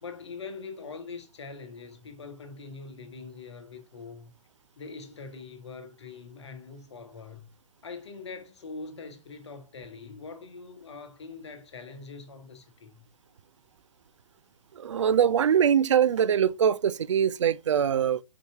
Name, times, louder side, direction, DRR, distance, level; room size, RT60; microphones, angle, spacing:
voice 1, 0.0-4.3 4.8-7.5 7.8-13.0, left 4 dB, 55° left, 1.1 m, -43 dB
voice 2, 14.8-18.2, right 8 dB, 60° right, 0.4 m, -23 dB
5.5 x 4.6 x 4.4 m
figure-of-eight pair, 120°, 17 cm